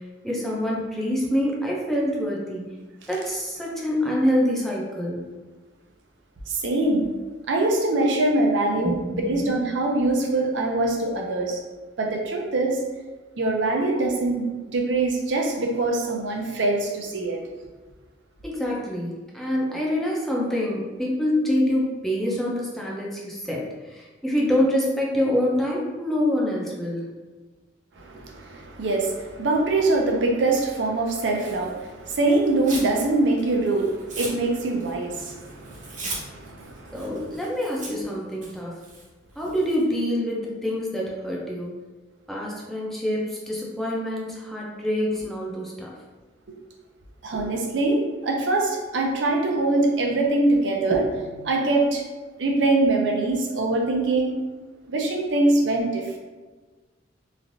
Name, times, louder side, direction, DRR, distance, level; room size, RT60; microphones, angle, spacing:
voice 1, 0.2-2.7 3.1-5.2 8.8-9.4 18.4-27.1 36.9-38.8 39.4-41.7 42.3-45.9, left 1 dB, ahead, -4 dB, 0.5 m, -26 dB
voice 2, 6.5-7.1 7.5-11.6 12.0-12.8 13.4-17.4 28.0-37.1 47.2-52.0 52.4-54.4 54.9-56.1, right 2 dB, 80° right, 1 dB, 0.5 m, -23 dB
Tearing, 31.3-32.9 33.3-39.8, right 3 dB, 40° right, 0.7 m, -39 dB
3.1 x 2.5 x 2.6 m, 1.3 s
head